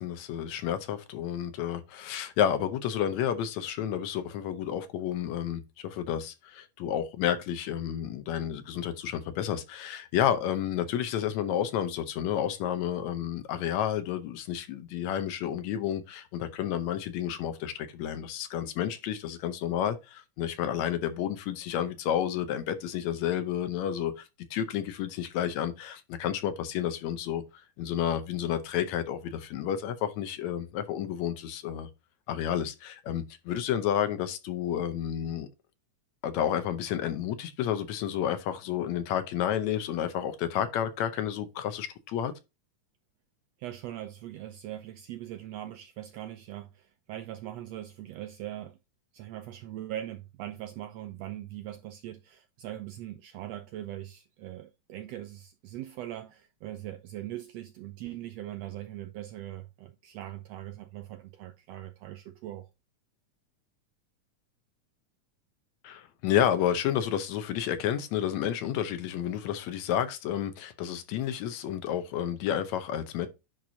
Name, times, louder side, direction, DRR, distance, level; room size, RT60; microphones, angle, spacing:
voice 1, 0.0-24.3 24.5-27.4 27.8-31.9 32.3-35.5 36.2-42.3 65.8-73.3, left 10 dB, 75° left, 1.9 m, -30 dB
voice 2, 43.6-48.8 49.1-62.7, right 13 dB, 80° right, 1.5 m, -41 dB
10.5 x 4.6 x 2.7 m
omnidirectional pair, 3.5 m